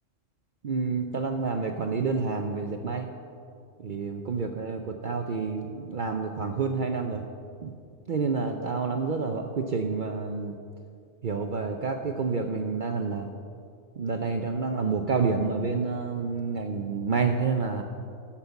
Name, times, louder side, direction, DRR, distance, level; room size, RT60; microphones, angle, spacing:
voice 1, 0.6-3.1 3.8-7.2 7.6-7.7 8.1-10.5 11.2-13.3 14.0-17.8, right 4 dB, 50° right, 5 dB, 0.7 m, -28 dB
12.0 x 7.3 x 6.9 m, 2.3 s
omnidirectional pair, 1.3 m